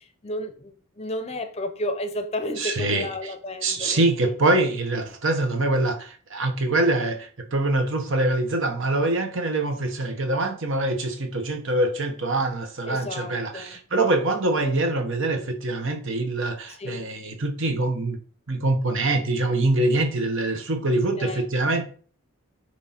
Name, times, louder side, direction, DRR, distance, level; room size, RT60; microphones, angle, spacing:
voice 1, 0.0-4.3 12.9-13.8 16.7-17.1 21.2-21.5, left 1 dB, 30° left, 0.7 m, -32 dB
voice 2, 2.6-3.1 3.6-18.2 18.5-21.8, right 2 dB, 55° right, 1.1 m, -24 dB
9.5 x 3.2 x 4.3 m
head